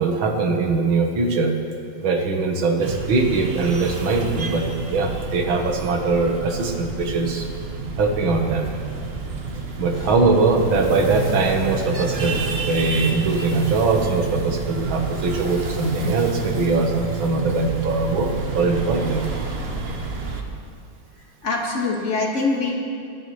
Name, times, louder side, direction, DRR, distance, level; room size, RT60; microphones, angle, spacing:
voice 1, 0.0-1.5 2.0-7.5 8.0-8.7 9.8-19.2, right 3 dB, 90° right, 3 dB, 2.0 m, -21 dB
sound 1, 2.8-20.4, right 4 dB, 40° right, 0.9 m, -29 dB
voice 2, 21.4-22.8, left 3 dB, 40° left, -2 dB, 2.0 m, -24 dB
20.0 x 11.0 x 3.1 m, 2.6 s
omnidirectional pair, 2.1 m